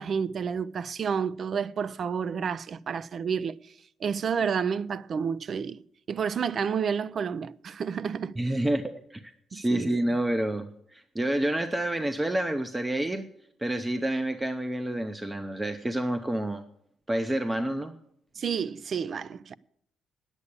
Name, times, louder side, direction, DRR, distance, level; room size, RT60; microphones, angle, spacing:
voice 1, 0.0-3.6 4.0-5.8 6.1-8.4 9.5-9.9 18.4-19.5, right 6 dB, 50° right, 0.4 m, -30 dB
voice 2, 8.4-9.2 9.5-13.3 13.6-16.6 17.1-17.9, right 1 dB, 15° right, 0.7 m, -28 dB
9.6 x 8.3 x 8.3 m
cardioid pair, 90°, 0 cm